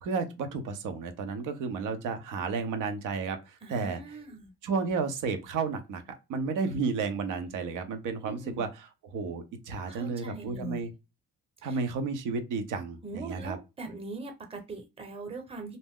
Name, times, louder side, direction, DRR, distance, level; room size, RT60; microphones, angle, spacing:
voice 1, 0.0-4.0 4.6-6.0 6.3-10.9 11.6-13.6, right 5 dB, 85° right, 0.8 m, -32 dB
voice 2, 3.6-4.5 8.2-8.6 9.8-10.9 11.6-11.8 13.0-15.8, right 2 dB, 20° right, 0.9 m, -41 dB
2.6 x 2.1 x 3.6 m
cardioid pair, 90°, 30 cm